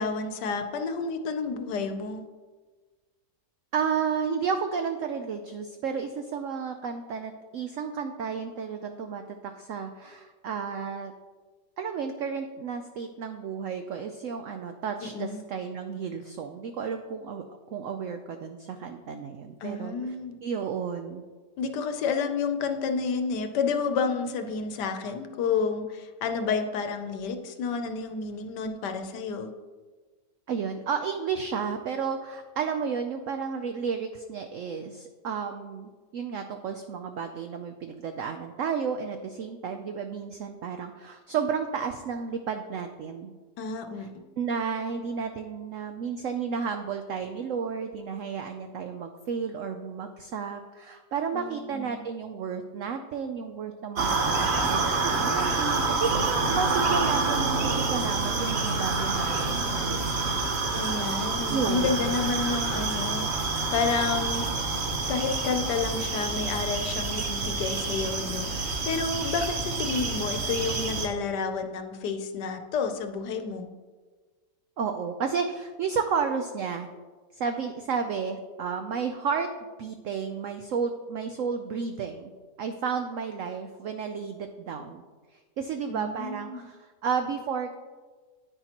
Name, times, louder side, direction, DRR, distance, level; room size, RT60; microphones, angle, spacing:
voice 1, 0.0-2.2 15.0-15.4 19.6-20.4 21.6-29.5 43.6-44.1 51.3-52.1 60.8-64.5 65.1-73.7 85.9-86.6, left 5 dB, 75° left, 7 dB, 1.3 m, -30 dB
voice 2, 3.7-11.1 11.8-17.4 17.7-20.0 20.4-21.3 30.5-43.3 44.0-44.1 44.4-60.2 61.5-62.1 74.8-76.9 77.3-79.5 79.8-82.3 82.6-85.0 85.3-87.7, right 6 dB, 70° right, 6 dB, 0.7 m, -32 dB
sound 1, 54.0-71.1, right 3 dB, 45° right, 1.1 m, -28 dB
9.8 x 9.2 x 2.9 m, 1.4 s
omnidirectional pair, 1.9 m